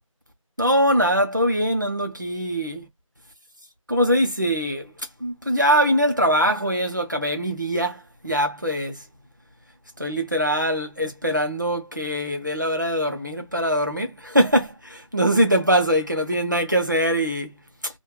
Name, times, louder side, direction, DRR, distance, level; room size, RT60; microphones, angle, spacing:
voice 1, 0.6-2.8 3.9-4.9 5.2-9.0 10.0-17.5, equal, 35° right, 0.6 m, -22 dB
2.2 x 2.1 x 3.0 m
figure-of-eight pair, 180°, 17 cm